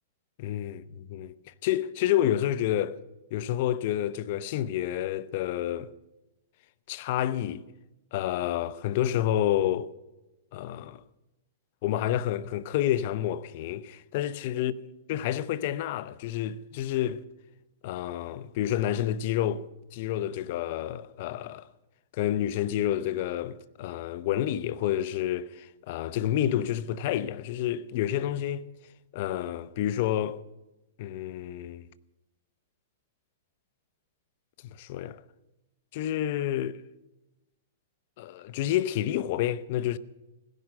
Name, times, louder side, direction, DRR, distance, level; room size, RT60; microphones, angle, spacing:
voice 1, 0.4-1.3 1.6-2.9 3.3-5.9 6.9-7.6 8.1-9.9 10.5-11.0 11.8-14.7 15.1-17.2 17.8-19.6 19.9-21.7 22.1-28.6 29.1-30.4 31.0-31.8 34.6-35.2 35.9-36.8 38.2-40.0, left 12 dB, 55° left, 0.7 m, -29 dB
17.5 x 10.5 x 6.5 m
hypercardioid pair, 120°, 0 cm